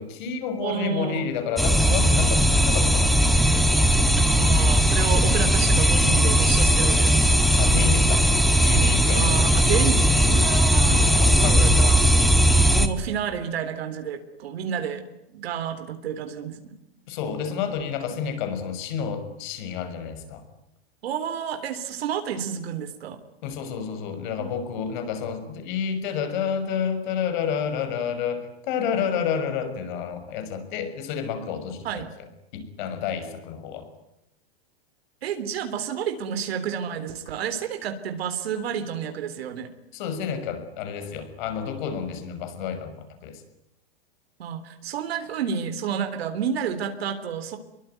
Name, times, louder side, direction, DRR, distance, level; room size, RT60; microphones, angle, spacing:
voice 1, 0.0-3.6 7.6-8.3 8.6-9.4 9.7-9.9 11.2-11.9 17.1-20.4 23.4-32.0 32.5-33.9 39.9-43.4, left 7 dB, 50° left, 9 dB, 6.2 m, -30 dB
voice 2, 0.6-1.3 4.3-7.3 9.1-12.0 12.7-15.0 15.3-16.7 21.0-23.2 24.4-24.5 31.8-32.1 35.2-39.7 44.4-47.6, right 8 dB, 75° right, 7 dB, 3.6 m, -30 dB
sound 1, 1.6-12.9, equal, ahead, 1.4 m, -18 dB
27.0 x 23.0 x 9.4 m, 0.85 s
supercardioid pair, 165°, 31 cm